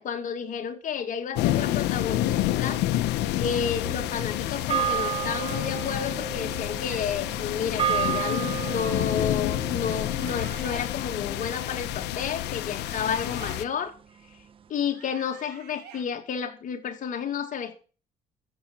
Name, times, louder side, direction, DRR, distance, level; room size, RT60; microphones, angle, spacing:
voice 1, 0.0-2.8 3.4-13.9 14.7-17.8, left 7 dB, 50° left, 2.4 m, -31 dB
sound 1, 1.4-13.6, left 14 dB, 85° left, 1.0 m, -29 dB
sound 2, 3.8-12.3, right 10 dB, 30° right, 0.9 m, -33 dB
sound 3, 5.0-5.6 6.4-7.0 8.1-9.0 10.0-10.9 12.5-13.6 14.7-16.0, right 8 dB, 85° right, 3.4 m, -47 dB
14.0 x 7.2 x 6.1 m
cardioid pair, 110°, 17 cm